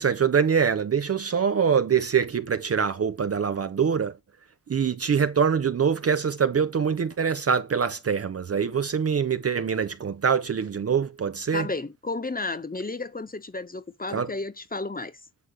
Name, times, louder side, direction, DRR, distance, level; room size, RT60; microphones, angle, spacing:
voice 1, 0.0-4.2 4.7-11.7 14.1-14.3, right 6 dB, 35° right, 0.7 m, -24 dB
voice 2, 11.5-15.2, left 3 dB, 20° left, 1.3 m, -32 dB
8.2 x 3.7 x 6.0 m
cardioid pair, 60°, 40 cm